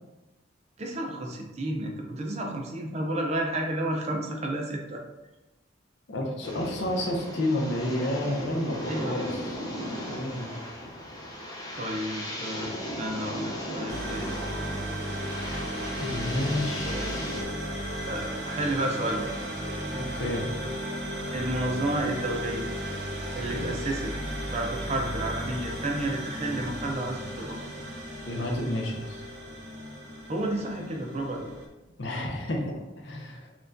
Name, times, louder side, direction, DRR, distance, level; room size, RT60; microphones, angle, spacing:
voice 1, 0.8-5.0 8.9-9.4 11.7-14.3 16.8-17.5 18.1-19.3 21.3-22.7 23.3-24.1 24.5-27.7 30.3-31.5, right 1 dB, 35° right, 1 dB, 0.5 m, -31 dB
voice 2, 6.1-10.5 16.0-16.9 19.8-20.4 23.4-23.7 28.2-29.2 32.0-32.6 33.0-33.5, left 1 dB, 70° left, 0 dB, 0.7 m, -31 dB
sound 1, 6.4-17.4, equal, 20° left, 0.6 m, -37 dB
sound 2, 13.9-31.7, equal, 70° right, 0.8 m, -35 dB
4.3 x 2.3 x 2.6 m, 1.0 s
head